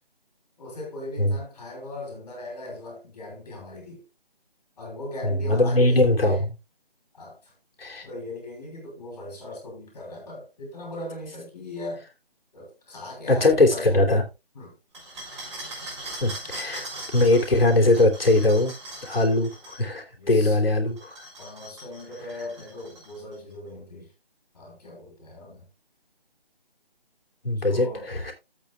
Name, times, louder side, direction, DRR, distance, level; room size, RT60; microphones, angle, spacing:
voice 1, 0.6-4.0 4.8-6.4 7.1-7.5 8.0-12.0 12.5-14.2 14.6-14.8 20.2-20.6 21.4-24.1 24.5-25.6 27.5-28.1, left 1 dB, 35° left, 5.8 m, -39 dB
voice 2, 5.2-6.6 7.8-8.1 13.3-14.2 16.2-16.9 17.1-18.7 19.0-21.2 27.4-28.3, left 2 dB, 70° left, 3.3 m, -21 dB
sound 1, 14.9-19.8 20.9-23.3, right 2 dB, 30° right, 6.2 m, -40 dB
15.0 x 8.3 x 2.3 m
figure-of-eight pair, 155°, 30 cm